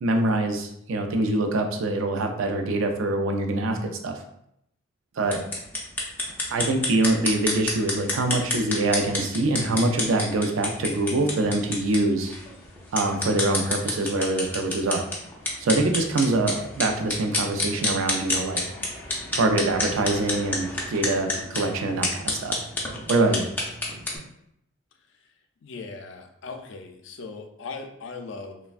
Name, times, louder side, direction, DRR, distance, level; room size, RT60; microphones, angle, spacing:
voice 1, 0.0-4.2 5.2-5.4 6.5-12.3 12.9-15.0 15.6-18.6 19.3-22.6 23.1-23.5, right 2 dB, 85° right, 4 dB, 0.4 m, -24 dB
sound 1, 5.2-24.2, left 2 dB, 10° left, 0.4 m, -30 dB
voice 2, 25.6-28.6, left 4 dB, 75° left, 4 dB, 0.4 m, -39 dB
3.2 x 2.1 x 2.4 m, 0.76 s
head